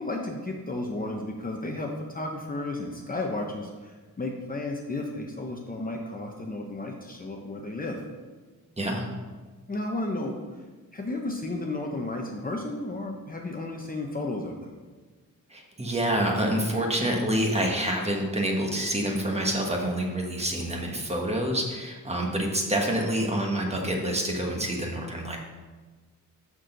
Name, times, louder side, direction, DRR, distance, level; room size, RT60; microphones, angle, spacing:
voice 1, 0.0-8.0 9.7-10.4 10.9-14.8, left 2 dB, 25° left, 1 dB, 0.8 m, -33 dB
voice 2, 15.5-25.4, right 1 dB, 20° right, 1 dB, 1.2 m, -27 dB
6.4 x 6.2 x 6.6 m, 1.3 s
wide cardioid pair, 160°, 34 cm